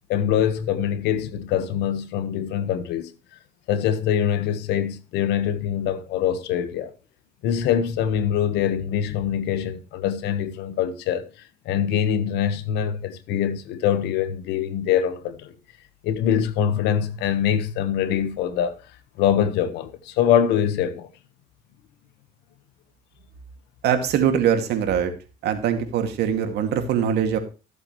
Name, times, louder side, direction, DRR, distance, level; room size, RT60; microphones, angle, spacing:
voice 1, 0.1-3.1 3.7-6.9 7.4-11.2 11.6-15.5 16.0-18.7 19.2-21.1, left 9 dB, 90° left, 1.4 m, -24 dB
voice 2, 23.8-25.1 25.4-27.4, right 8 dB, 75° right, 2.4 m, -22 dB
14.5 x 8.2 x 3.2 m
cardioid pair, 110°, 17 cm